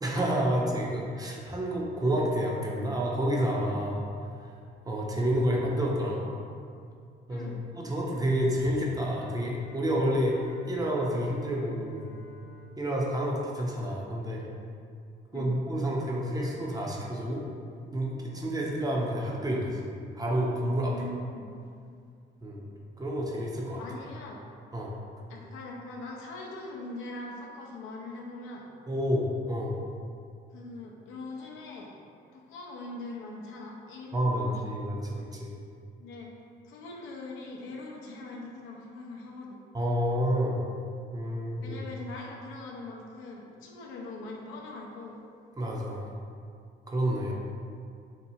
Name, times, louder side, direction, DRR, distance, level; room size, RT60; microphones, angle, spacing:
voice 1, 0.0-4.0 4.4-4.5 4.8-6.3 7.3-10.4 10.6-12.1 12.8-14.4 15.3-17.4 17.9-19.8 20.2-20.9 22.4-22.7 23.0-23.8 24.7-24.9 28.9-29.7 34.1-35.5 39.7-40.6 41.1-41.8 45.6-46.1 46.9-47.3, equal, 20° right, -3 dB, 0.5 m, -29 dB
voice 2, 7.3-7.6 15.3-15.5 20.9-21.5 23.8-24.4 25.3-28.6 30.5-32.0 32.3-34.6 36.0-36.3 36.6-39.6 41.6-45.2, left 2 dB, 80° left, -1 dB, 0.5 m, -42 dB
Bowed string instrument, 8.7-14.2, right 1 dB, 75° right, 1.2 m, -53 dB
2.8 x 2.3 x 2.7 m, 2.3 s
supercardioid pair, 75°, 20 cm